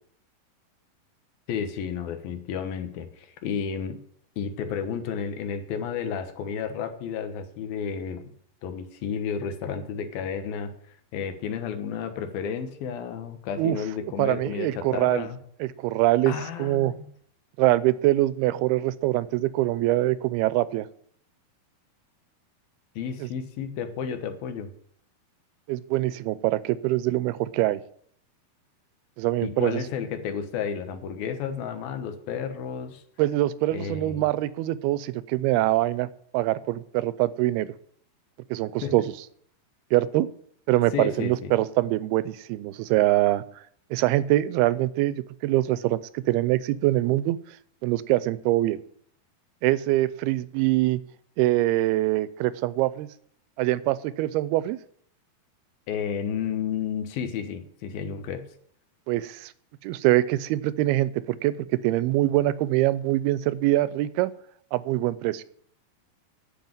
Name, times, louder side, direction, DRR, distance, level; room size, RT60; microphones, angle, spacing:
voice 1, 1.5-4.0 4.4-8.3 8.6-15.4 16.3-17.1 23.0-24.7 29.4-33.0 33.7-34.3 38.8-39.0 40.9-41.6 55.9-58.4, left 7 dB, 75° left, 8 dB, 2.9 m, -32 dB
voice 2, 14.2-15.3 15.6-16.3 16.6-16.9 17.6-20.9 23.2-23.3 25.7-27.8 29.2-29.8 33.2-36.1 36.3-37.7 38.5-39.0 39.9-40.3 40.7-43.4 43.9-47.4 47.8-48.8 49.6-51.0 51.4-53.1 53.6-54.8 59.1-59.5 59.8-61.6 61.8-64.3 64.7-65.4, right 16 dB, 85° right, 17 dB, 2.6 m, -24 dB
9.4 x 7.8 x 8.9 m, 0.64 s
omnidirectional pair, 4.4 m